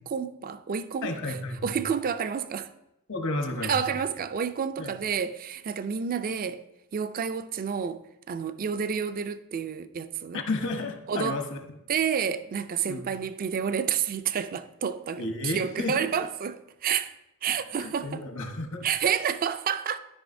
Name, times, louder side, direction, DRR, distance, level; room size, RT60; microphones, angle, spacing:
voice 1, 0.1-1.4 1.6-2.7 3.6-6.6 6.9-8.0 8.3-10.4 11.1-11.4 11.9-17.1 17.4-18.2 18.8-20.0, right 7 dB, 40° right, 0.3 m, -29 dB
voice 2, 1.0-1.8 3.1-3.8 4.8-4.9 10.3-11.8 12.9-13.1 15.2-16.0 17.7-18.9, left 2 dB, 60° left, 1.0 m, -32 dB
12.5 x 5.4 x 2.6 m
head